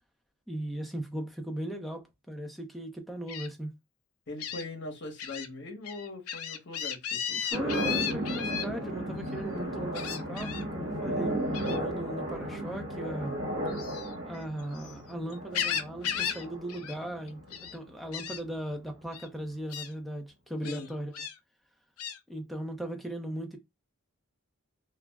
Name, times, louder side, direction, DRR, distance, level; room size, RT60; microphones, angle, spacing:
voice 1, 0.5-3.7 7.3-11.4 11.7-13.3 14.2-21.1 22.3-23.6, right 1 dB, ahead, 0.5 m, -38 dB
Gull seagull, 3.3-3.5 4.4-4.6 5.2-5.5 5.8-8.7 9.9-10.6 11.5-11.8 13.7-14.9 15.3-16.4 16.7-17.0 17.3-17.8 18.1-18.4 19.1-19.3 19.7-19.9 20.6-21.3 22.0-22.2, left 8 dB, 75° left, 0.5 m, -35 dB
voice 2, 4.3-7.5 20.7-20.9, left 2 dB, 50° left, 0.9 m, -41 dB
sound 1, 7.5-17.9, right 1 dB, 50° right, 1.3 m, -35 dB
2.3 x 2.1 x 3.3 m
head